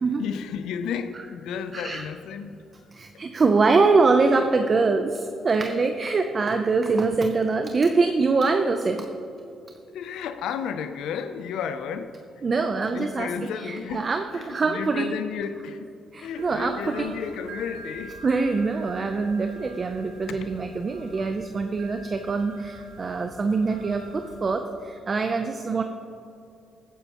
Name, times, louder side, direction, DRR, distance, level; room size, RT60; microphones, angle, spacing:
voice 1, 0.2-2.6 9.9-12.1 12.9-15.9 16.2-18.2 20.3-20.4, left 7 dB, 85° left, 10 dB, 0.5 m, -32 dB
voice 2, 1.7-2.0 2.9-9.1 12.4-13.3 13.6-15.1 16.1-17.1 18.2-25.8, right 4 dB, 40° right, 6 dB, 0.6 m, -24 dB
sound 1, 16.3-24.7, right 2 dB, 80° right, 1.0 m, -46 dB
15.0 x 9.3 x 3.0 m, 2.6 s
cardioid pair, 90°, 0 cm